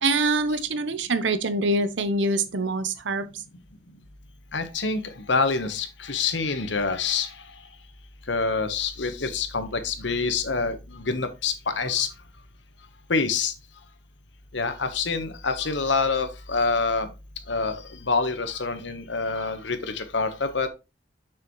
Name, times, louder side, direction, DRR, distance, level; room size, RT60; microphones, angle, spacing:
voice 1, 0.0-3.3, right 2 dB, 75° right, 0.8 m, -24 dB
voice 2, 4.5-5.0 5.3-7.3 8.3-12.1 13.1-13.5 14.5-17.1 17.5-20.7, left 4 dB, 75° left, 1.2 m, -26 dB
6.8 x 6.3 x 3.1 m
head